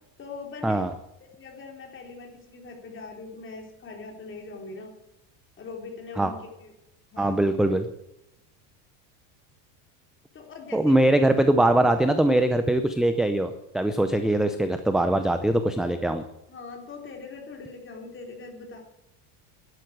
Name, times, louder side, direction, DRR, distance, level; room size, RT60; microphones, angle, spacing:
voice 1, 0.2-0.8 1.2-4.9 5.6-6.7 7.1-7.4 10.3-11.0 16.5-18.8, left 4 dB, 25° left, 2 dB, 3.7 m, -41 dB
voice 2, 7.2-7.9 10.7-16.2, right 1 dB, ahead, 8 dB, 0.5 m, -22 dB
11.5 x 11.5 x 7.9 m, 0.88 s
cardioid pair, 145°, 45 cm